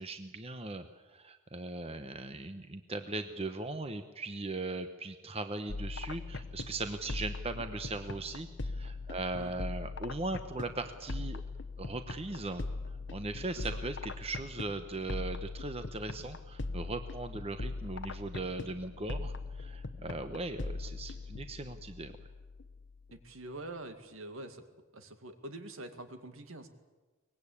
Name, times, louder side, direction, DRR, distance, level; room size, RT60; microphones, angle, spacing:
voice 1, 0.0-11.4 11.8-22.2, right 2 dB, 25° right, 8 dB, 1.0 m, -39 dB
sound 1, 5.7-23.3, left 3 dB, 55° left, 1.0 m, -41 dB
voice 2, 23.1-24.6 24.9-26.7, right 2 dB, 70° right, 8 dB, 2.2 m, -45 dB
23.5 x 20.0 x 8.6 m, 1.2 s
head